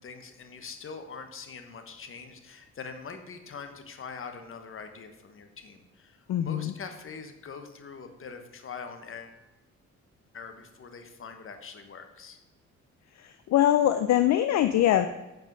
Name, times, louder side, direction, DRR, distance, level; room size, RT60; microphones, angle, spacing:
voice 1, 0.0-9.4 10.3-12.4, left 5 dB, 45° left, 7 dB, 1.2 m, -43 dB
voice 2, 6.3-6.7 13.1-15.1, left 12 dB, 65° left, 10 dB, 0.5 m, -23 dB
7.6 x 5.4 x 5.4 m, 1.1 s
cardioid pair, 90°, 30 cm